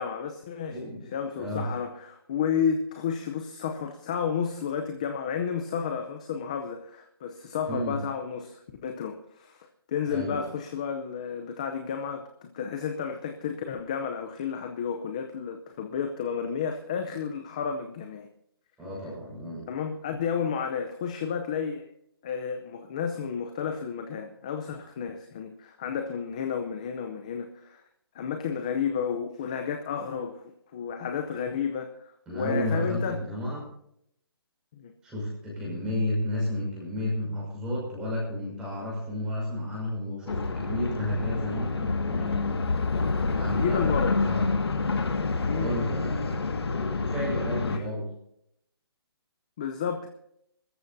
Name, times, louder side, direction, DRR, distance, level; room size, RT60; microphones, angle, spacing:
voice 1, 0.0-18.3 19.7-21.9 22.2-27.8 28.1-30.4 30.7-33.2 34.8-34.9 43.6-44.2 45.4-45.8 47.7-47.8 49.6-50.1, left 7 dB, 15° left, 6 dB, 0.6 m, -32 dB
voice 2, 0.7-1.1 1.4-1.7 7.7-8.0 10.1-10.4 18.8-19.7 32.3-33.7 35.0-42.4 43.3-44.7 45.4-46.4 46.7-48.1, left 1 dB, 5° right, -5 dB, 5.9 m, -32 dB
sound 1, 40.3-47.8, left 3 dB, 75° left, 1.9 m, -28 dB
23.0 x 14.0 x 2.7 m, 0.74 s
hypercardioid pair, 175°, 13 cm